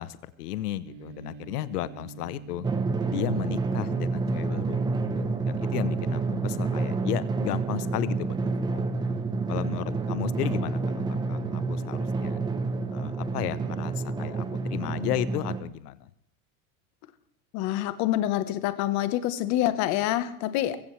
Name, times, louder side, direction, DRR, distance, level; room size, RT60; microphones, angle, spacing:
voice 1, 0.0-2.7 3.1-4.9 5.4-8.9 9.5-10.8 11.1-12.4 12.9-16.1, left 14 dB, 80° left, 16 dB, 0.8 m, -34 dB
sound 1, 0.8-15.6, right 5 dB, 40° right, 2.4 m, -47 dB
Drum, 2.6-15.6, right 3 dB, 10° right, 0.8 m, -29 dB
voice 2, 17.5-20.8, left 13 dB, 40° left, 12 dB, 1.1 m, -26 dB
22.0 x 16.0 x 3.2 m, 0.77 s
supercardioid pair, 150°, 45 cm